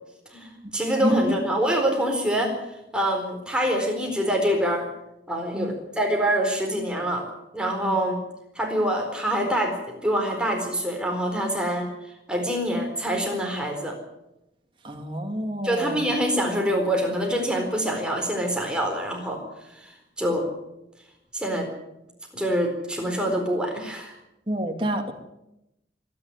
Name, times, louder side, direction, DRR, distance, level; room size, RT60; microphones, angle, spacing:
voice 1, 0.3-2.6 2.9-4.9 5.3-7.3 7.5-8.2 8.6-11.9 12.3-14.0 15.6-19.4 19.7-19.9 20.2-20.5 21.3-21.7 22.3-24.1, equal, 5° right, 1 dB, 4.2 m, -25 dB
voice 2, 1.0-1.3 5.5-5.7 7.8-8.0 14.8-16.0 24.5-25.1, right 1 dB, 30° right, 3 dB, 2.5 m, -27 dB
25.0 x 10.5 x 9.9 m, 0.88 s
head